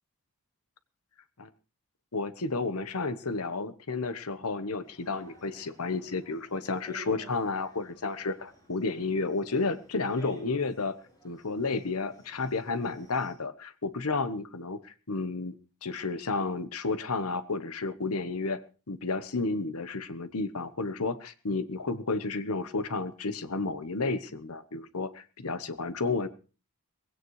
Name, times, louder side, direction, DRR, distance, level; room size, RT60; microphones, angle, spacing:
voice 1, 2.1-10.9 11.2-15.5 15.8-18.6 18.9-26.3, left 3 dB, 75° left, 12 dB, 1.1 m, -32 dB
sound 1, 4.8-13.3, right 1 dB, 15° left, 7.6 m, -54 dB
19.5 x 16.5 x 3.2 m, 0.34 s
head